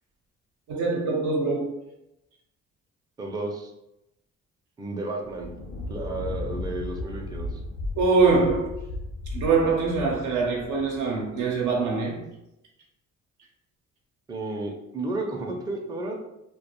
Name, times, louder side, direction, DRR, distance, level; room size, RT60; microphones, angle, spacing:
voice 1, 0.7-1.8 8.0-8.8 9.3-12.2, right 4 dB, 75° right, 0.6 m, -23 dB
voice 2, 3.2-3.7 4.8-5.5 5.9-7.6 14.3-16.1, right 2 dB, 15° right, 0.4 m, -32 dB
Thunder, 5.2-11.9, left 2 dB, 80° left, 0.6 m, -36 dB
2.2 x 2.1 x 2.9 m
cardioid pair, 90°, 30 cm